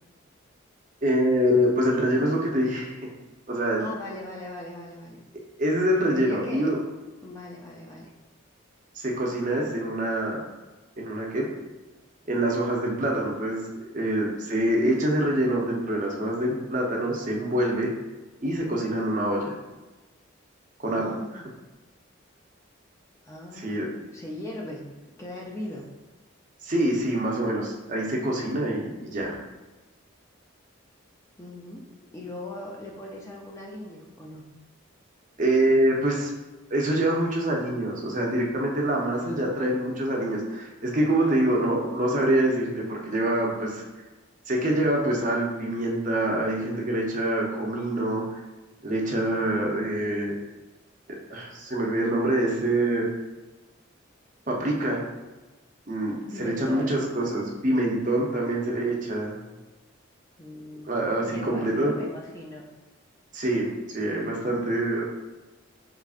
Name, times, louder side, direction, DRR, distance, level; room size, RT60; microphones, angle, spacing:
voice 1, 1.0-3.0 3.5-3.9 5.6-6.8 8.9-10.4 11.0-11.5 12.3-13.7 13.9-17.9 18.4-19.5 20.8-21.0 21.3-21.4 23.6-23.9 26.6-29.4 35.4-36.3 36.7-43.8 44.5-48.4 48.8-50.3 51.3-53.1 54.5-55.0 55.9-59.4 60.8-61.9 63.3-65.1, right 1 dB, 40° right, -1 dB, 0.6 m, -25 dB
voice 2, 3.8-5.2 6.1-6.7 7.2-8.1 20.9-21.6 23.2-23.9 24.1-24.8 25.2-25.9 31.4-31.8 32.1-34.4 41.2-41.7 56.3-57.0 60.4-60.9 61.2-62.6, left 1 dB, 15° left, -3 dB, 0.4 m, -39 dB
4.9 x 3.1 x 2.4 m, 1.2 s
head